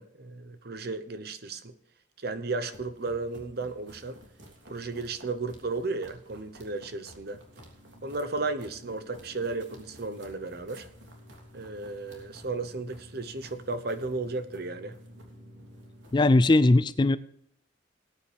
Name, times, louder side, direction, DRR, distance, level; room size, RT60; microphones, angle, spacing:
voice 1, 0.0-1.7 2.2-4.2 4.7-7.4 8.0-10.9 11.5-15.0, right 3 dB, 55° right, 10 dB, 0.9 m, -34 dB
sound 1, 2.6-16.3, equal, 80° right, 3.1 m, -51 dB
voice 2, 16.1-17.2, left 2 dB, 25° left, 16 dB, 0.4 m, -20 dB
19.0 x 9.6 x 3.4 m, 0.72 s
head